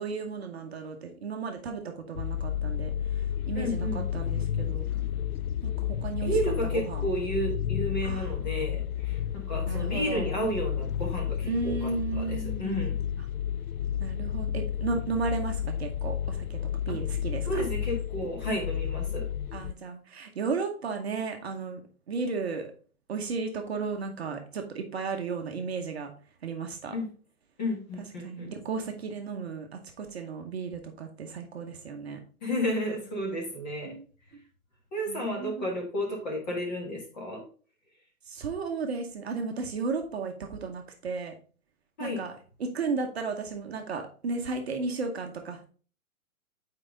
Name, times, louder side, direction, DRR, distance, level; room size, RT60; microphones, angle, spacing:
voice 1, 0.0-4.8 5.6-6.3 6.7-7.1 8.0-8.3 9.7-10.3 11.5-12.8 13.2-13.3 14.0-17.6 19.5-21.8 22.1-22.7 23.1-26.1 26.4-26.9 28.2-32.2 33.8-34.1 35.1-35.6 38.3-41.4 42.0-42.3 42.6-45.7, right 4 dB, 45° right, 3 dB, 0.8 m, -34 dB
sound 1, 2.1-19.7, left 9 dB, 80° left, 0.5 m, -31 dB
voice 2, 3.6-4.1 6.1-13.0 16.9-17.0 17.5-19.3 26.9-27.1 27.6-28.5 32.4-33.9 34.9-37.4 42.0-42.2, equal, 30° left, 0 dB, 1.7 m, -32 dB
5.8 x 4.5 x 3.7 m, 0.40 s
hypercardioid pair, 180°, 43 cm